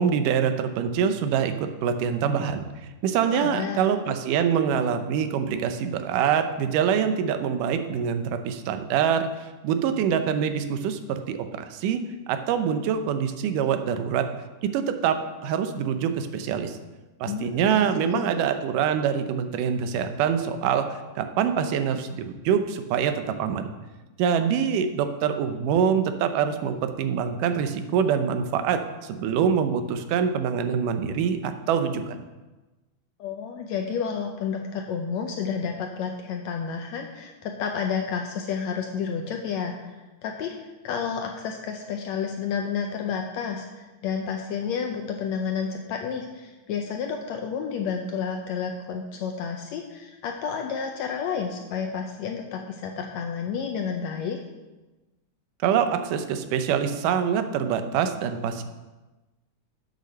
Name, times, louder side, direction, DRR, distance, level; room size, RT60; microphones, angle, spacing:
voice 1, 0.0-2.7 3.0-12.0 12.3-14.2 14.6-16.8 17.2-20.9 21.2-23.7 24.2-32.2 55.6-58.6, right 7 dB, 85° right, 8 dB, 2.3 m, -25 dB
voice 2, 3.3-3.8 17.3-18.3 33.2-39.9 40.2-40.6 40.8-54.4, left 6 dB, 75° left, 3 dB, 1.7 m, -30 dB
8.1 x 6.6 x 6.6 m, 1.1 s
omnidirectional pair, 3.7 m